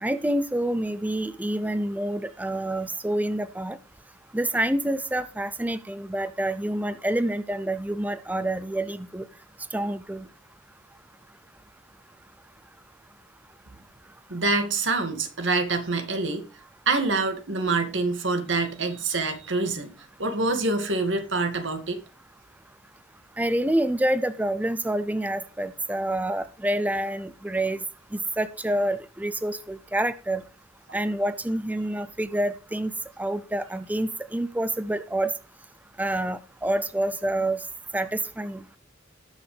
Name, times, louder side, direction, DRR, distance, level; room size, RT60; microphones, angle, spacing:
voice 1, 0.0-3.8 4.3-9.3 9.7-10.3 23.4-27.8 28.1-30.4 30.9-32.9 33.2-35.3 36.0-37.6 37.9-38.6, right 1 dB, 10° right, 13 dB, 0.5 m, -27 dB
voice 2, 14.3-16.5 16.9-19.9 20.2-22.0, right 3 dB, 85° right, 7 dB, 2.2 m, -26 dB
19.0 x 6.4 x 3.4 m, 0.34 s
head